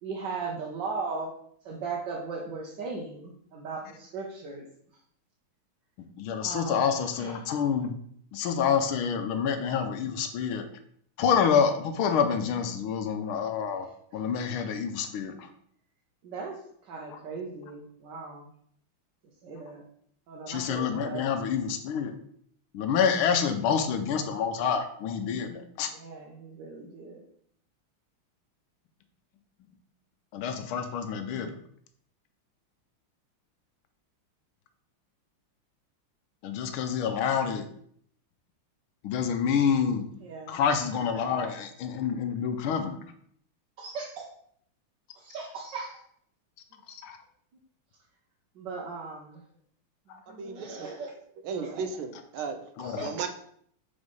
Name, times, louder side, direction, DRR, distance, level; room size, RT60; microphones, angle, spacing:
voice 1, 0.0-1.3 1.6-4.7 6.4-6.8 7.1-7.4 16.2-16.6 16.9-18.5 19.4-19.8 20.3-21.3 25.9-27.2 40.2-40.6 40.9-41.3 43.8-44.3 45.1-46.0 48.6-49.4 50.3-51.1 51.5-51.9 52.8-53.3, right 4 dB, 65° right, -2 dB, 1.5 m, -38 dB
voice 2, 6.2-7.9 8.3-10.6 11.2-13.9 14.1-15.5 20.5-22.1 22.7-25.9 30.3-31.5 36.4-37.7 39.0-40.1 40.5-43.0 46.9-47.2 52.8-53.1, left 7 dB, 80° left, 8 dB, 1.6 m, -27 dB
voice 3, 50.4-50.9 51.4-52.6 53.0-53.3, right 5 dB, 80° right, 7 dB, 1.6 m, -35 dB
5.2 x 4.0 x 5.3 m, 0.64 s
omnidirectional pair, 2.3 m